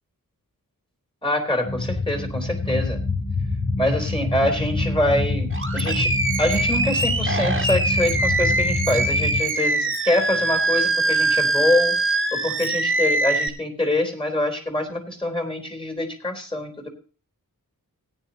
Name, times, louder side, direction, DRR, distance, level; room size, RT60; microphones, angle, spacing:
voice 1, 1.2-3.0 3.8-11.9 12.3-16.9, left 1 dB, 15° left, 6 dB, 3.4 m, -25 dB
sound 1, 1.6-9.4, left 3 dB, 65° left, 7.6 m, -26 dB
Animal, 5.5-13.5, right 2 dB, 35° right, 1.8 m, -23 dB
17.5 x 9.9 x 2.8 m, 0.37 s
wide cardioid pair, 80°, 35 cm